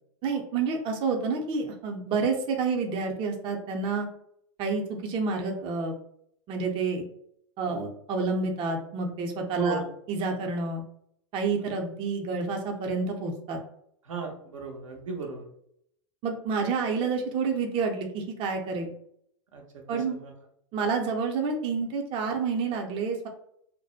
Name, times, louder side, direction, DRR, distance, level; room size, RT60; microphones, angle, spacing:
voice 1, 0.2-4.1 4.6-6.0 6.5-7.0 7.6-9.8 10.1-10.8 11.3-13.6 16.2-18.9 19.9-20.2 20.7-23.3, right 4 dB, 35° right, 2 dB, 0.5 m, -29 dB
voice 2, 14.0-15.4 19.5-20.3, right 4 dB, 85° right, 0 dB, 0.7 m, -35 dB
2.5 x 2.1 x 2.4 m, 0.72 s
hypercardioid pair, 105°, 16 cm